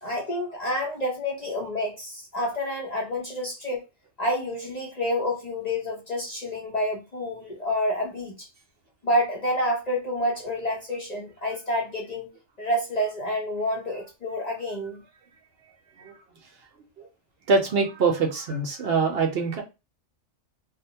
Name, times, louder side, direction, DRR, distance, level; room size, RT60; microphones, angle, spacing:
voice 1, 0.0-3.9 4.2-8.5 9.0-12.3 12.6-15.0, left 1 dB, 45° left, -1 dB, 0.6 m, -28 dB
voice 2, 17.5-19.6, right 4 dB, 60° right, 3 dB, 0.8 m, -24 dB
2.5 x 2.1 x 2.7 m, 0.26 s
omnidirectional pair, 1.3 m